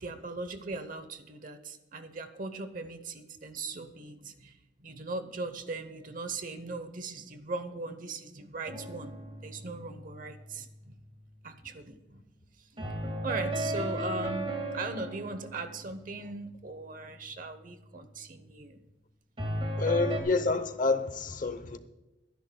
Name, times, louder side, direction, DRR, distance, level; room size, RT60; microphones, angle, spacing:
voice 1, 0.0-9.1 9.4-11.0 11.4-12.2 12.6-18.8 19.6-19.7, right 3 dB, 50° right, 0.9 m, -39 dB
sound 1, 8.7-11.0 12.8-16.6 19.4-20.2, right 1 dB, 35° right, 1.9 m, -36 dB
voice 2, 19.8-21.8, left 3 dB, 45° left, 0.9 m, -28 dB
25.5 x 10.5 x 2.3 m
head